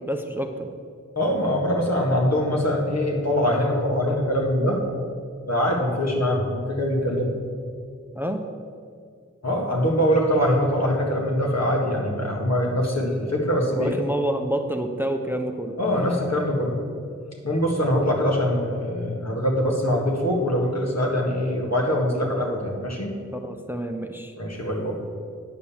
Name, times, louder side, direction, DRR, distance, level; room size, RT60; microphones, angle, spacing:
voice 1, 0.1-0.7 8.1-8.5 13.7-15.7 23.4-24.3, right 1 dB, 5° right, 5 dB, 0.7 m, -28 dB
voice 2, 1.2-4.8 5.5-7.4 9.4-13.9 15.8-16.8 17.4-23.1 24.4-25.0, equal, 60° left, -1 dB, 1.8 m, -23 dB
9.4 x 5.3 x 7.1 m, 2.3 s
wide cardioid pair, 45°, 31 cm